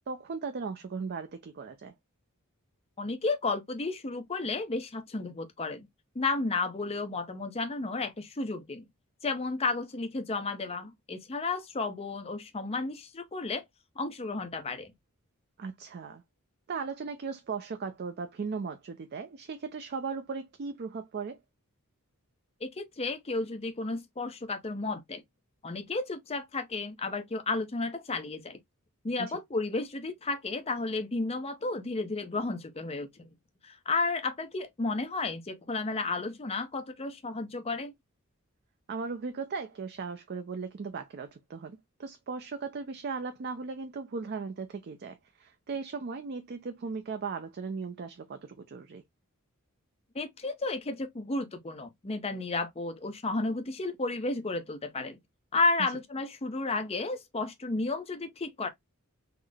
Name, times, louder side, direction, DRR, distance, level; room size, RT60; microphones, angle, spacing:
voice 1, 0.1-1.9 15.6-16.2 16.7-21.4 29.2-29.4 38.9-49.0, right 5 dB, 50° right, 0.4 m, -37 dB
voice 2, 3.0-5.9 6.1-8.9 9.2-13.6 14.0-14.9 22.6-25.2 25.6-28.6 29.0-33.3 33.6-37.9 50.1-55.2 55.5-58.7, left 3 dB, 30° left, 0.6 m, -32 dB
3.7 x 2.0 x 3.3 m
head